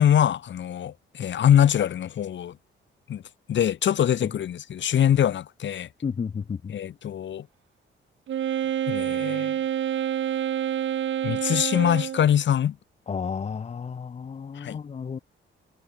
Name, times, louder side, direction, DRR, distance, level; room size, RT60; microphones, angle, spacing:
voice 1, 0.0-2.6 3.1-3.2 3.5-5.9 6.7-7.5 8.9-9.6 11.2-12.8 14.6-14.8, left 10 dB, 65° left, 1.7 m, -23 dB
voice 2, 6.0-6.7 13.1-15.2, left 6 dB, 30° left, 0.9 m, -32 dB
Wind instrument woodwind instrument, 8.3-12.3, right 10 dB, 65° right, 1.6 m, -27 dB
cardioid pair, 130°, 21 cm